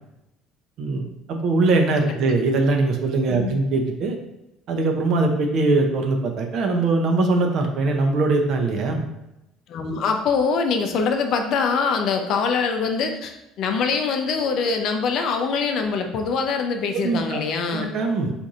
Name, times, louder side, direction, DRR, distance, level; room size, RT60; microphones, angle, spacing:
voice 1, 0.8-4.2 4.7-9.1 17.0-17.4 17.7-18.3, right 3 dB, 60° right, 3 dB, 0.6 m, -21 dB
voice 2, 9.7-17.9, left 5 dB, 60° left, 5 dB, 0.5 m, -24 dB
4.7 x 2.6 x 2.6 m, 0.91 s
supercardioid pair, 75°, 0 cm